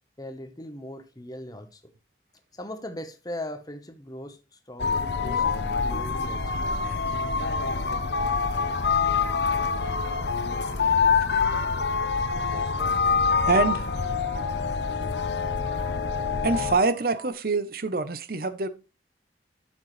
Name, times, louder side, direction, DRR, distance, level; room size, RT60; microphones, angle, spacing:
voice 1, 0.2-1.8 2.5-5.4 5.8-6.7, left 1 dB, 20° left, 1.1 m, -39 dB
sound 1, 4.8-16.8, left 5 dB, 65° left, 0.9 m, -26 dB
sound 2, 6.3-17.3, right 2 dB, 80° right, 3.0 m, -43 dB
voice 2, 13.5-13.9 16.4-18.7, right 3 dB, 50° right, 0.8 m, -25 dB
11.5 x 7.4 x 3.2 m
head